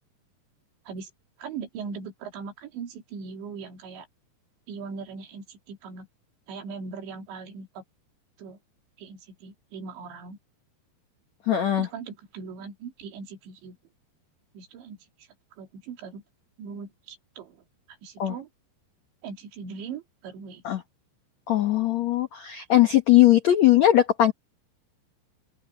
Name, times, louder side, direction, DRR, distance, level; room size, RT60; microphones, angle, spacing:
voice 1, 1.4-4.1 4.7-6.1 6.5-7.8 8.4-8.6 9.0-10.4 11.8-13.8 14.5-16.2 16.6-17.6 18.0-18.5 19.2-20.8, right 5 dB, 75° right, 5.0 m, -40 dB
voice 2, 11.5-11.9 18.2-18.3 20.6-20.8 21.5-24.3, left 13 dB, 75° left, 1.6 m, -19 dB
open air
omnidirectional pair, 5.2 m